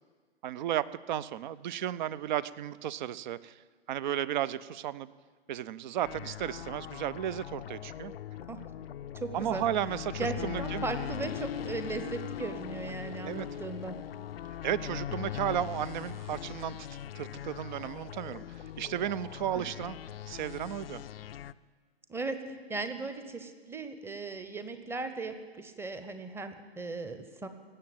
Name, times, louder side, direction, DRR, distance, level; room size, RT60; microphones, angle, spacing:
voice 1, 0.4-3.5 3.9-5.1 5.5-8.1 9.3-10.8 13.2-13.5 14.6-16.8 17.1-18.4 18.8-20.0 20.3-21.0, right 11 dB, 50° right, 19 dB, 0.6 m, -34 dB
sound 1, 6.0-21.5, left 10 dB, 65° left, 0.5 m, -40 dB
voice 2, 9.1-9.6 10.2-14.0 22.1-27.5, right 3 dB, 10° right, 9 dB, 0.9 m, -37 dB
18.0 x 7.8 x 9.0 m, 1.5 s
figure-of-eight pair, 105°, 31 cm